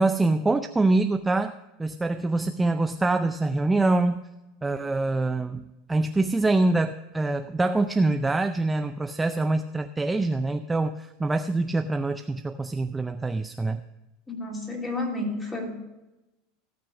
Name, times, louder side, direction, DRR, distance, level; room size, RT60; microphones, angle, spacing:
voice 1, 0.0-1.5 1.8-4.2 4.6-13.8, right 2 dB, 10° right, 8 dB, 0.4 m, -25 dB
voice 2, 14.3-15.8, left 2 dB, 15° left, -1 dB, 3.3 m, -31 dB
16.5 x 6.1 x 5.1 m, 0.99 s
supercardioid pair, 135°, 0 cm